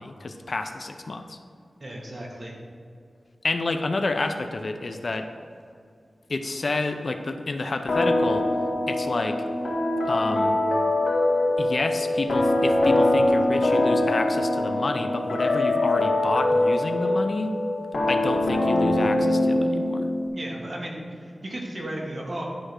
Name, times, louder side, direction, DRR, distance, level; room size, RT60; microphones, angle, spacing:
voice 1, 0.0-1.4 3.4-5.3 6.3-8.5 8.9-9.4 10.1-10.6 11.6-17.6 18.1-20.1, left 2 dB, 50° left, 7 dB, 0.5 m, -29 dB
voice 2, 1.8-2.6 20.3-22.4, right 1 dB, 40° right, -2 dB, 1.8 m, -35 dB
sound 1, 7.9-20.3, left 1 dB, 85° left, 1.7 m, -23 dB
11.5 x 3.8 x 6.3 m, 2.4 s
wide cardioid pair, 110°, 0 cm